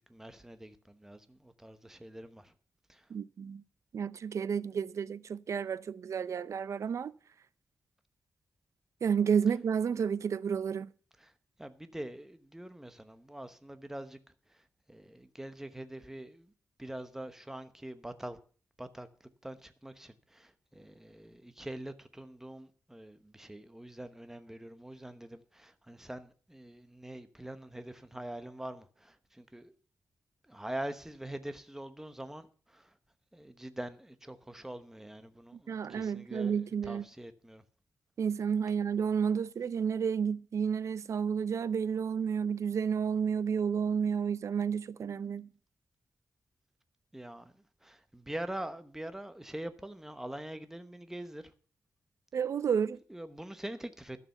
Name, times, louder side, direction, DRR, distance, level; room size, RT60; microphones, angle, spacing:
voice 1, 0.1-2.5 2.9-3.0 11.2-11.3 11.6-14.2 14.9-16.5 16.8-18.4 18.8-19.1 19.4-29.7 30.5-32.9 33.3-37.6 47.1-47.5 47.8-51.5 53.1-54.2, right 1 dB, 10° right, 1.0 m, -44 dB
voice 2, 3.1-3.6 3.9-7.1 9.0-10.9 35.7-37.0 38.2-45.5 52.3-53.0, right 7 dB, 70° right, 0.5 m, -31 dB
12.5 x 6.8 x 6.9 m
wide cardioid pair, 115°, 5 cm